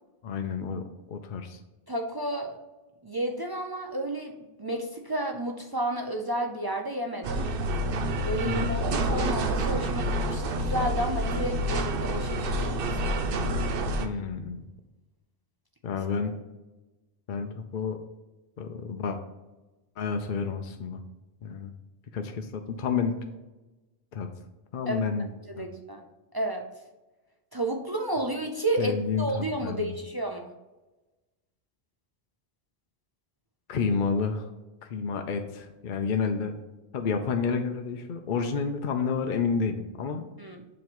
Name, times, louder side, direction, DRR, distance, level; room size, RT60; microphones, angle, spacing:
voice 1, 0.2-1.6 8.4-8.7 14.0-14.6 15.8-16.3 17.3-18.0 18.6-19.2 20.0-21.0 21.4-21.7 22.1-23.1 24.1-24.3 24.7-25.3 25.6-25.7 28.8-29.9 33.7-34.5 34.8-36.5 36.9-40.2, left 5 dB, 60° left, 5 dB, 0.7 m, -30 dB
voice 2, 1.9-2.6 3.0-7.5 8.2-13.9 24.9-25.0 25.5-26.0 26.3-26.6 27.5-30.5 40.4-40.6, right 1 dB, 30° right, 2 dB, 0.5 m, -32 dB
sound 1, 7.2-14.1, right 1 dB, 65° right, 0.8 m, -28 dB
7.0 x 3.1 x 6.0 m, 1.1 s
omnidirectional pair, 1.0 m